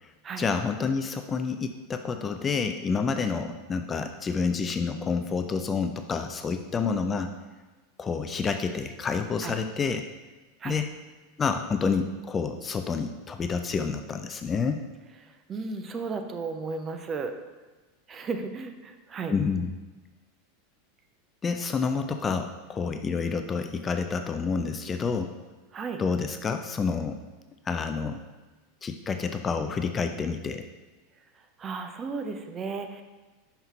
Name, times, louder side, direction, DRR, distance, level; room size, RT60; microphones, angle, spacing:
voice 1, 0.4-7.3 8.0-10.0 10.6-10.9 11.4-14.8 19.3-19.7 21.4-25.3 26.0-27.2 27.7-28.2 28.8-30.6, left 5 dB, 20° left, 7 dB, 0.4 m, -28 dB
voice 2, 15.2-17.4 18.1-19.3 25.7-26.0 31.6-33.0, right 4 dB, 25° right, 6 dB, 0.7 m, -34 dB
5.7 x 5.6 x 4.4 m, 1.2 s
figure-of-eight pair, 85°, 0 cm